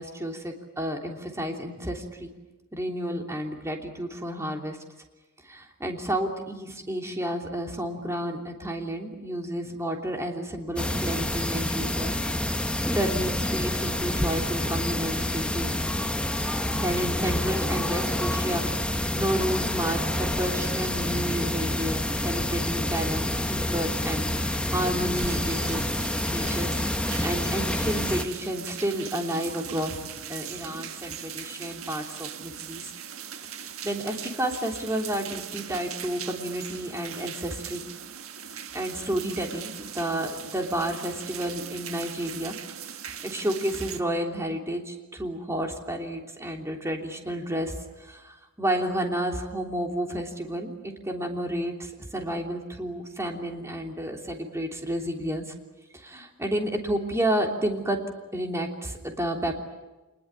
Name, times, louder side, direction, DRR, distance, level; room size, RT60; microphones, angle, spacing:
voice 1, 0.0-2.3 2.7-4.8 5.4-12.1 12.7-15.7 16.7-25.8 26.3-26.7 27.2-32.9 33.8-37.8 38.7-42.5 43.2-47.7 48.0-55.4 55.9-58.0 58.3-59.6, right 1 dB, 15° right, 2 dB, 3.2 m, -31 dB
sound 1, 10.8-28.2, left 1 dB, 5° left, 1.1 m, -28 dB
sound 2, 25.1-44.0, right 8 dB, 65° right, 1.6 m, -40 dB
26.5 x 21.0 x 9.9 m, 1.1 s
head